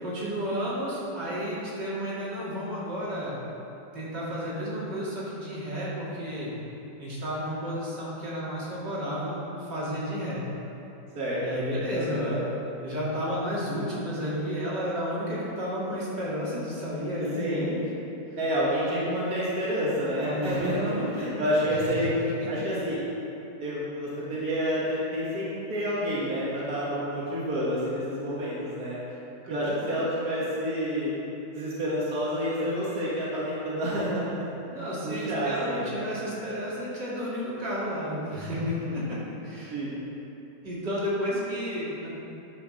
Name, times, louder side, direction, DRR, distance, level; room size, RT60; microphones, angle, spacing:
voice 1, 0.0-3.4 3.9-6.5 7.0-10.4 11.4-12.5 12.8-17.8 20.2-21.8 22.2-22.6 29.1-30.0 34.7-39.2 39.4-39.7 40.6-42.1, equal, 85° right, -8 dB, 3.1 m, -32 dB
voice 2, 11.1-11.6 11.9-12.4 17.2-17.7 18.4-22.1 22.5-23.0 23.6-29.0 29.5-31.1 31.5-34.5 35.0-36.0 38.5-39.1 39.7-39.9, equal, 60° right, -8 dB, 2.4 m, -29 dB
10.5 x 6.2 x 6.3 m, 2.9 s
omnidirectional pair, 1.9 m